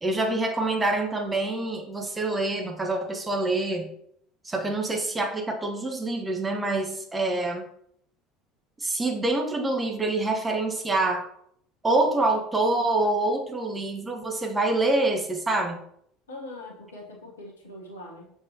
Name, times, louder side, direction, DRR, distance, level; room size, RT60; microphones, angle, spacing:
voice 1, 0.0-3.9 4.4-7.6 8.8-11.3 11.8-15.8, right 2 dB, 20° right, 3 dB, 1.1 m, -26 dB
voice 2, 16.3-18.3, left 1 dB, 75° left, -1 dB, 1.2 m, -42 dB
6.9 x 4.8 x 2.8 m, 0.69 s
figure-of-eight pair, 65°, 0 cm